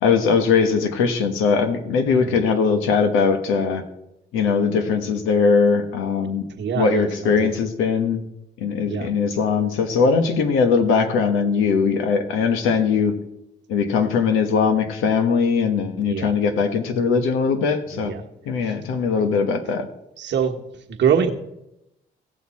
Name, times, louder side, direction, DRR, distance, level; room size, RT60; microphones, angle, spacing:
voice 1, 0.0-3.8 4.3-6.4 6.7-8.2 8.6-13.1 13.7-18.1 18.4-19.9, left 5 dB, 85° left, 8 dB, 1.2 m, -20 dB
voice 2, 2.0-2.4 6.5-7.5 8.9-9.1 15.9-16.3 17.9-18.2 18.6-18.7 20.2-21.3, right 7 dB, 65° right, 5 dB, 1.3 m, -25 dB
16.5 x 6.6 x 4.2 m, 0.87 s
supercardioid pair, 60°, 20 cm